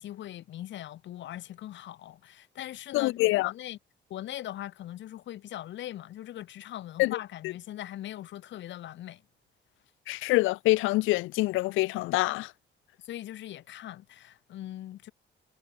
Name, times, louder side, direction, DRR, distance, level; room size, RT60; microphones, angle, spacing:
voice 1, 0.0-3.8 4.1-9.2 13.1-15.1, left 13 dB, 65° left, 0.8 m, -41 dB
voice 2, 2.9-3.5 7.0-7.2 7.4-7.5 10.1-12.5, left 19 dB, 90° left, 0.4 m, -25 dB
cardioid pair, 90°, 20 cm